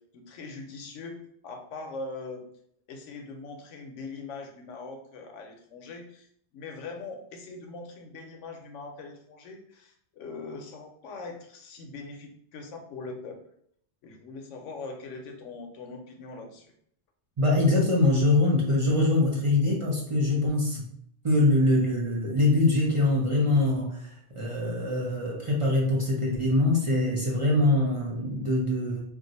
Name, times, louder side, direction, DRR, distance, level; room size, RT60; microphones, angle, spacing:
voice 1, 0.1-2.4 2.9-6.3 6.5-13.4 14.0-16.7, left 3 dB, 85° left, 3 dB, 0.9 m, -41 dB
voice 2, 17.4-20.9 21.2-29.0, left 2 dB, 35° right, -4 dB, 0.6 m, -23 dB
2.5 x 2.3 x 3.9 m, 0.66 s
omnidirectional pair, 1.2 m